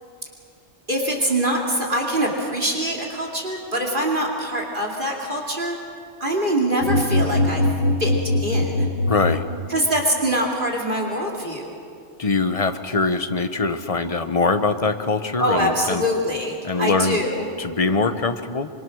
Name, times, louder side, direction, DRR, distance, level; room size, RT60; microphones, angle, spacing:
voice 1, 0.9-5.8 6.2-7.7 8.0-8.9 9.7-11.8 15.4-17.5, equal, 45° right, -1 dB, 2.8 m, -24 dB
sound 1, 6.8-10.0, left 1 dB, 65° left, 1.3 m, -22 dB
voice 2, 9.1-9.5 12.2-16.0 16.6-17.2 17.6-18.7, left 3 dB, 30° left, 9 dB, 1.0 m, -22 dB
25.5 x 24.0 x 6.3 m, 2.4 s
omnidirectional pair, 1.2 m